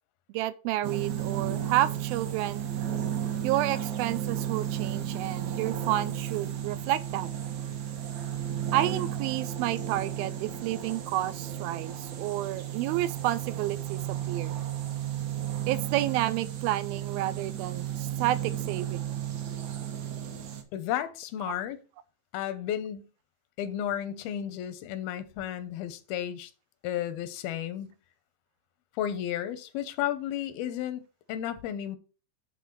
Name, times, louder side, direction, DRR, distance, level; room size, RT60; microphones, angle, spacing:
voice 1, 0.3-2.7 3.4-7.3 8.7-14.0 14.3-14.6 15.7-19.0, right 15 dB, 85° right, 2.4 m, -30 dB
sound 1, 0.8-20.6, right 10 dB, 60° right, 2.2 m, -33 dB
voice 2, 20.7-21.8 22.3-23.1 23.6-26.5 26.8-27.9 29.0-31.0 31.3-32.0, left 11 dB, 90° left, 2.6 m, -33 dB
9.2 x 4.0 x 5.7 m
omnidirectional pair, 4.2 m